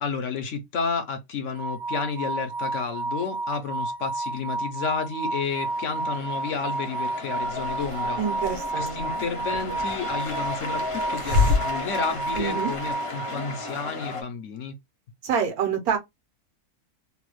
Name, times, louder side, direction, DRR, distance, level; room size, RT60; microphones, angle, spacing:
voice 1, 0.0-8.2 8.8-14.8, left 5 dB, 60° left, 0.9 m, -31 dB
sound 1, 1.5-13.8, right 2 dB, 25° right, 0.6 m, -31 dB
sound 2, 5.3-14.2, left 3 dB, 40° left, 0.4 m, -36 dB
Hiss, 7.4-12.9, left 3 dB, 60° right, 1.1 m, -30 dB
voice 2, 8.2-9.0 12.3-12.7 15.2-16.0, right 7 dB, 75° right, 1.4 m, -26 dB
3.2 x 2.2 x 3.1 m
omnidirectional pair, 1.6 m